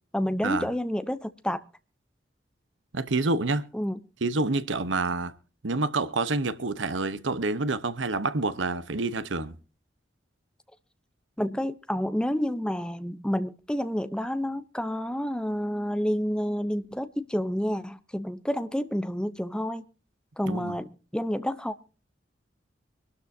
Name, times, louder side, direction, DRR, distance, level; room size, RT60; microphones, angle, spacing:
voice 1, 0.1-1.6 3.7-4.0 11.4-19.8 20.4-21.8, equal, 5° left, 0.7 m, -29 dB
voice 2, 2.9-3.7 4.2-5.3 5.6-9.6 20.5-20.8, right 3 dB, 90° right, 1.0 m, -28 dB
24.5 x 12.5 x 2.7 m
head